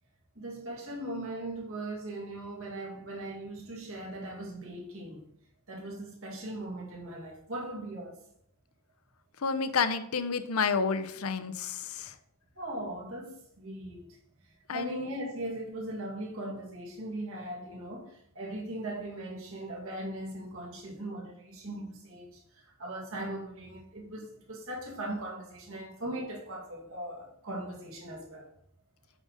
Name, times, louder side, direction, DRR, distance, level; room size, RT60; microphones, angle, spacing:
voice 1, 0.4-5.3 5.7-8.2 12.6-14.2 14.7-28.5, right 1 dB, 70° right, 1.9 m, -39 dB
voice 2, 9.4-12.1 14.7-15.1, left 5 dB, 80° left, 0.7 m, -30 dB
8.7 x 4.0 x 5.0 m
head